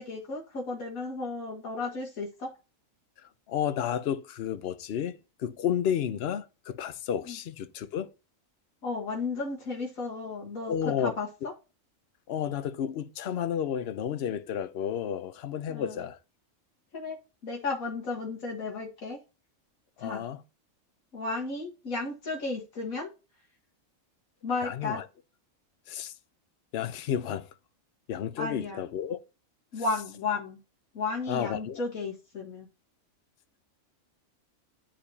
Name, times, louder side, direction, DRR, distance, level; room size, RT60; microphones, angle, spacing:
voice 1, 0.0-2.5 7.3-7.4 8.8-11.5 15.7-16.1 16.9-19.2 20.0-20.3 21.1-23.1 24.4-25.0 28.4-28.8 29.7-30.6 30.9-32.7, left 3 dB, 85° left, 1.9 m, -34 dB
voice 2, 3.5-8.1 10.7-11.1 12.3-16.2 20.0-20.4 24.6-25.0 25.9-26.1 26.7-27.5 28.1-29.2 31.3-31.8, left 9 dB, 55° left, 0.8 m, -31 dB
10.5 x 5.0 x 2.8 m
omnidirectional pair, 1.4 m